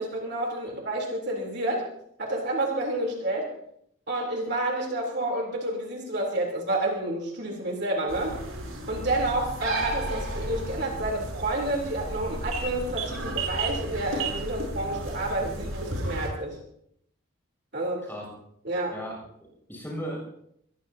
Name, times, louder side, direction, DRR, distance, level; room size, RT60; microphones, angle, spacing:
voice 1, 0.0-1.8 2.2-3.5 4.1-8.3 8.9-16.6 17.7-18.0 18.6-18.9, right 1 dB, 50° right, -1 dB, 3.7 m, -29 dB
sound 1, 8.1-16.3, right 2 dB, 80° right, 7.1 m, -33 dB
voice 2, 18.9-20.2, equal, 10° left, -1 dB, 7.4 m, -37 dB
23.5 x 21.0 x 2.9 m, 0.71 s
head